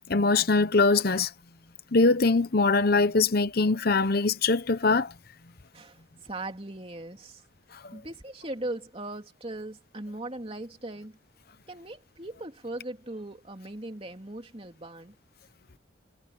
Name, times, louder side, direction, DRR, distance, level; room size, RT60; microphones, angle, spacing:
voice 1, 0.1-1.3 1.9-5.1 7.7-8.0, left 3 dB, 50° left, 0.9 m, -23 dB
voice 2, 5.7-7.4 7.9-11.2 11.7-15.1, right 1 dB, 30° right, 3.0 m, -39 dB
head